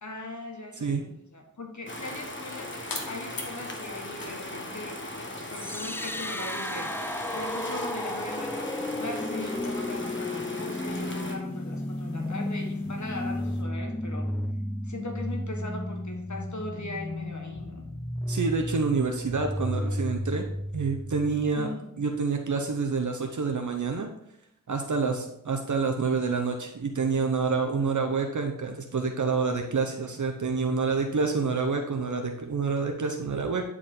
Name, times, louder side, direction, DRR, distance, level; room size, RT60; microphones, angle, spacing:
voice 1, 0.0-2.7 3.0-14.3 14.8-17.8 21.5-21.9 27.8-27.9, left 2 dB, 55° left, 2 dB, 1.5 m, -39 dB
sound 1, 1.9-13.6, left 3 dB, 90° left, 1.2 m, -47 dB
sound 2, 1.9-11.3, left 1 dB, 35° left, 1.3 m, -38 dB
sound 3, 5.5-21.5, left 1 dB, 5° left, 0.4 m, -33 dB
voice 2, 18.3-20.5 20.7-21.7 22.0-24.1 24.7-33.6, right 4 dB, 60° right, 3 dB, 0.8 m, -28 dB
9.6 x 4.8 x 3.8 m, 0.75 s
wide cardioid pair, 60°, 34 cm